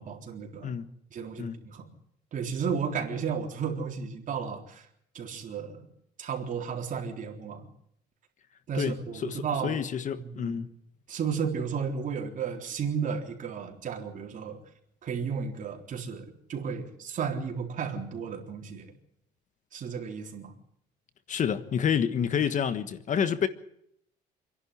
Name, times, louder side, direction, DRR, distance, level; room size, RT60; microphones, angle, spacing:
voice 1, 0.0-0.7 1.1-1.9 2.3-4.9 5.1-5.9 6.2-7.7 8.7-9.8 10.2-10.6 11.1-14.6 15.0-18.9 19.7-20.5, right 6 dB, 50° right, 3.9 m, -33 dB
voice 2, 8.7-10.7 21.3-23.5, left 8 dB, 50° left, 1.4 m, -29 dB
27.5 x 11.0 x 9.9 m
cardioid pair, 110°, 17 cm